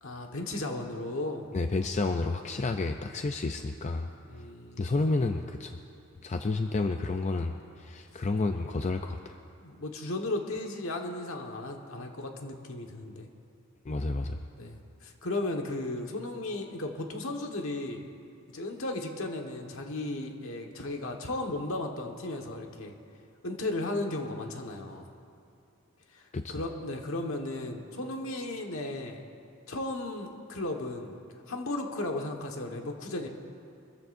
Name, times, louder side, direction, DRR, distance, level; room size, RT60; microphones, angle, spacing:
voice 1, 0.0-1.5 4.2-4.9 9.6-13.3 14.6-18.1 18.5-22.9 23.4-25.0 26.1-29.3 29.7-31.2 31.5-33.3, left 2 dB, 70° left, 2 dB, 1.4 m, -35 dB
voice 2, 1.5-4.1 4.8-5.8 6.2-9.4 13.9-14.4 26.3-26.5, left 3 dB, 30° left, 6 dB, 0.4 m, -30 dB
23.5 x 14.5 x 2.6 m, 2.6 s
head